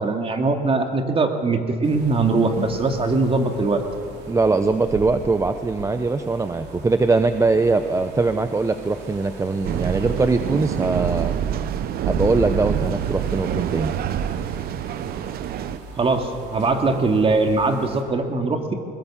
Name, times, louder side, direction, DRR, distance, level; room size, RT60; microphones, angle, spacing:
voice 1, 0.0-3.8 16.0-18.7, right 3 dB, 35° right, 5 dB, 2.4 m, -21 dB
sound 1, 1.8-18.0, right 2 dB, 85° right, 3.5 m, -37 dB
voice 2, 4.3-11.3 12.0-13.9, right 3 dB, 20° right, 9 dB, 0.7 m, -21 dB
sound 2, 9.6-15.8, right 10 dB, 65° right, 0.7 m, -26 dB
21.5 x 20.5 x 7.3 m, 2.3 s
cardioid pair, 110°, 17 cm